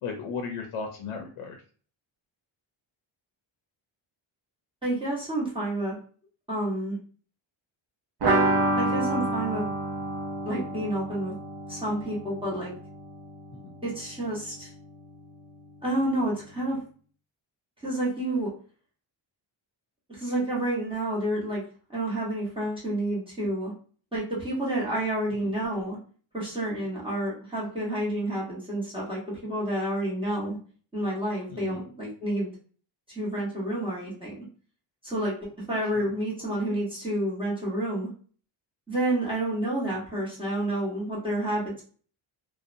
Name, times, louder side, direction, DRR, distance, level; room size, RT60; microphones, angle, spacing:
voice 1, 0.0-1.6 13.5-13.7 31.5-31.8 36.0-36.1, left 5 dB, 85° left, 3 dB, 0.6 m, -35 dB
voice 2, 4.8-6.0 6.5-7.0 8.8-9.7 10.4-11.3 11.7-12.7 13.8-14.7 15.8-16.8 17.8-18.5 20.1-21.6 21.9-23.7 24.1-26.0 26.3-30.6 30.9-32.5 33.1-34.4 35.0-38.1 38.9-41.8, right 1 dB, 10° right, -7 dB, 1.0 m, -29 dB
sound 1, 8.2-13.8 14.1-14.2 14.5-14.6, right 2 dB, 55° right, 0.7 m, -28 dB
2.6 x 2.2 x 2.5 m, 0.42 s
wide cardioid pair, 155°, 48 cm